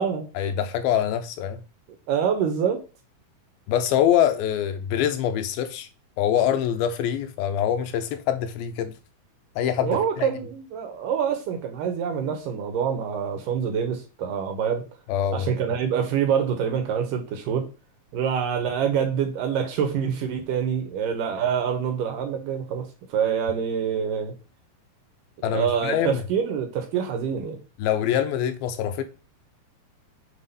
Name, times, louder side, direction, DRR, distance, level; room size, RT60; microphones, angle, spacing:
voice 1, 0.4-1.6 3.7-5.9 6.2-8.9 9.6-10.3 15.1-15.5 25.4-26.2 27.8-29.0, left 10 dB, 80° left, 2.5 m, -24 dB
voice 2, 2.1-2.8 9.8-14.8 15.3-17.7 18.1-24.3 25.5-27.6, right 7 dB, 70° right, 2.3 m, -26 dB
7.4 x 3.6 x 5.5 m
omnidirectional pair, 4.5 m